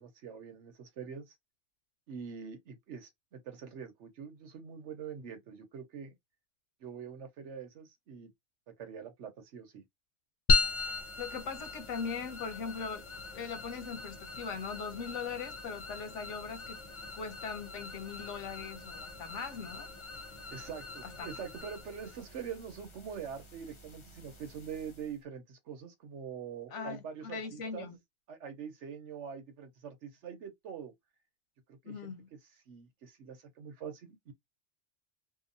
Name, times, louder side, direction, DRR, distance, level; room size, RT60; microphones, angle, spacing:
voice 1, 0.0-1.3 2.1-6.1 6.8-8.3 8.8-9.8 20.5-27.9 28.3-30.9 31.7-32.1 32.7-34.3, right 7 dB, 75° right, 1.2 m, -44 dB
sound 1, 10.5-25.2, left 3 dB, 40° left, 0.4 m, -37 dB
voice 2, 11.2-13.1 13.3-16.8 17.1-19.9 21.0-21.3 26.7-28.0 31.8-32.3, left 5 dB, 85° left, 1.1 m, -40 dB
2.9 x 2.3 x 2.6 m
omnidirectional pair, 1.2 m